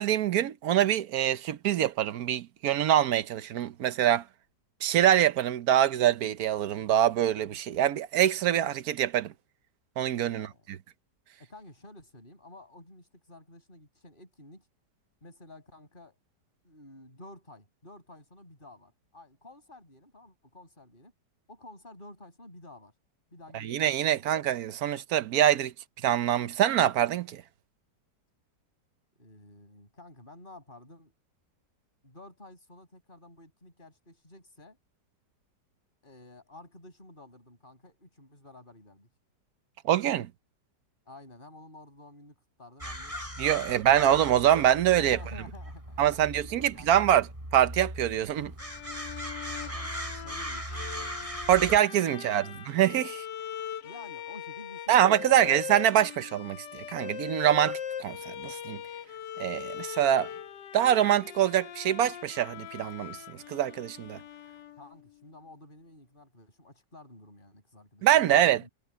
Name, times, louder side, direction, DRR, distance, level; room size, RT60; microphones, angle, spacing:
voice 1, 0.0-4.2 4.8-9.3 10.0-10.5 23.5-25.7 26.0-27.4 39.8-40.3 43.4-45.2 46.0-47.3 47.5-48.5 51.5-53.2 54.9-58.8 59.4-60.3 60.7-64.2 68.0-68.7, right 11 dB, 65° right, 1.2 m, -24 dB
voice 2, 10.3-10.7 11.4-14.7 15.2-16.2 16.6-21.1 21.5-22.9 23.3-24.3 29.2-31.1 32.0-34.8 36.0-39.1 41.1-44.5 44.9-47.1 49.5-51.7 52.1-52.7 53.8-55.5 64.8-68.7, left 2 dB, 30° left, 6.6 m, -51 dB
sound 1, 42.8-51.8, equal, 20° right, 7.5 m, -39 dB
Bowed string instrument, 48.6-65.2, left 9 dB, 85° left, 1.6 m, -41 dB
omnidirectional pair, 1.9 m